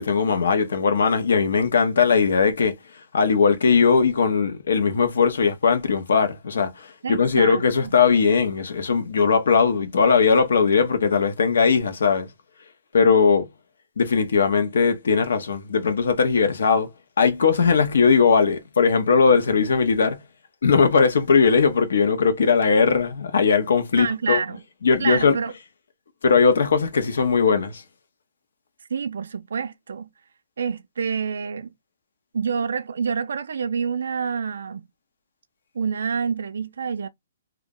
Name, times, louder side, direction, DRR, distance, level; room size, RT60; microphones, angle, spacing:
voice 1, 0.0-2.8 3.1-12.3 12.9-13.5 14.0-16.9 17.2-20.2 20.6-24.4 24.8-25.4 26.2-27.8, left 5 dB, 70° left, 0.8 m, -19 dB
voice 2, 7.0-7.6 24.0-24.6 25.0-25.5 28.9-30.1 30.6-31.7 32.3-34.8 35.8-37.1, right 6 dB, 70° right, 0.3 m, -27 dB
2.3 x 2.1 x 3.6 m
hypercardioid pair, 180°, 0 cm